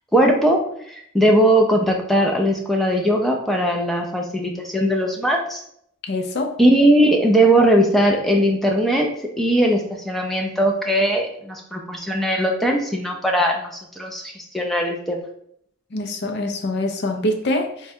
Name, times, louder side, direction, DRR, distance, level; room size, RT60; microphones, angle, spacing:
voice 1, 0.1-0.6 0.9-5.6 6.6-9.1 9.4-13.7 14.0-15.2, right 1 dB, ahead, 0 dB, 0.4 m, -19 dB
voice 2, 6.1-6.5 15.9-17.9, left 1 dB, 55° left, 5 dB, 0.5 m, -24 dB
3.5 x 2.2 x 4.3 m, 0.69 s
head